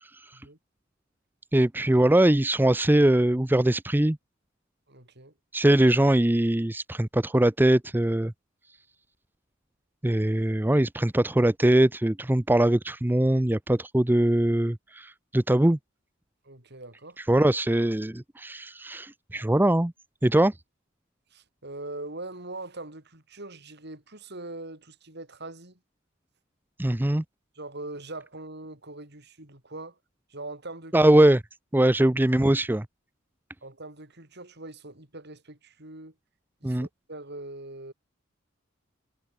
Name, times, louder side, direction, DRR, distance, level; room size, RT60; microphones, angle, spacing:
voice 1, 1.5-4.2 5.5-8.3 10.0-15.8 17.3-19.9 20.2-20.5 26.8-27.2 30.9-31.4 31.7-32.9 36.6-36.9, right 1 dB, 10° right, 0.6 m, -22 dB
voice 2, 4.9-5.3 16.4-17.4 21.3-25.8 27.6-30.0 30.3-31.1 33.6-36.2 36.6-37.9, right 2 dB, 55° right, 6.9 m, -42 dB
head